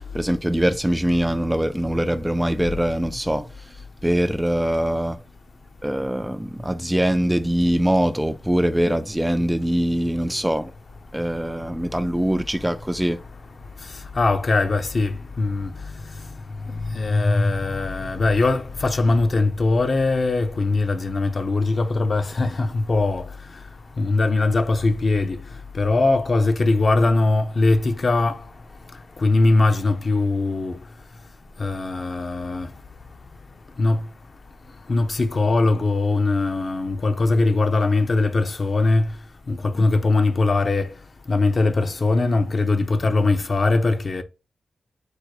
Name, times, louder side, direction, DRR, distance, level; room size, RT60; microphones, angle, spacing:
voice 1, 0.1-3.5 4.0-5.2 5.8-10.7 11.1-13.2, right 1 dB, 5° right, 0.3 m, -22 dB
voice 2, 14.1-15.7 16.7-23.3 24.0-25.4 25.7-28.4 29.2-30.8 31.6-32.7 33.8-34.0 34.9-39.1 39.5-40.9 41.3-44.2, left 3 dB, 50° left, 0.7 m, -21 dB
4.6 x 2.2 x 4.7 m
cardioid pair, 80°, 0 cm